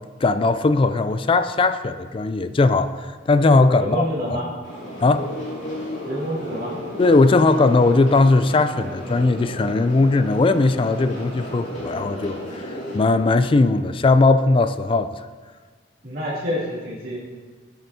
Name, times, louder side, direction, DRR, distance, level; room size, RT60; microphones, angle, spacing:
voice 1, 0.2-4.4 5.0-5.3 7.0-15.1, left 3 dB, 30° left, 11 dB, 0.3 m, -18 dB
voice 2, 3.8-4.5 6.0-6.7 16.0-17.2, equal, 55° right, -8 dB, 2.6 m, -27 dB
sound 1, 4.6-13.0, left 1 dB, 90° left, 2.8 m, -34 dB
13.5 x 7.9 x 2.8 m, 1.5 s
head